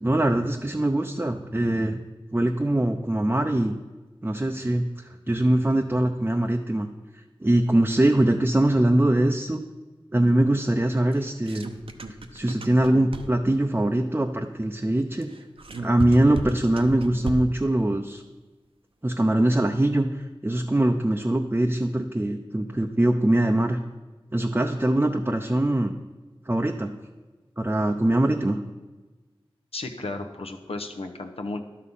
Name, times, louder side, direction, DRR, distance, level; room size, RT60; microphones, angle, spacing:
voice 1, 0.0-2.0 2.3-3.8 4.2-6.9 7.4-9.6 10.1-11.7 12.3-15.3 15.8-18.2 19.0-23.8 24.3-25.9 26.5-26.9 27.6-28.6, right 1 dB, 20° right, 3 dB, 0.6 m, -22 dB
sound 1, 11.1-13.6 15.2-17.7, right 2 dB, 70° right, 0.8 m, -34 dB
voice 2, 29.7-31.6, left 2 dB, 85° left, 4 dB, 0.9 m, -34 dB
11.5 x 6.5 x 5.5 m, 1.2 s
wide cardioid pair, 55°, 10 cm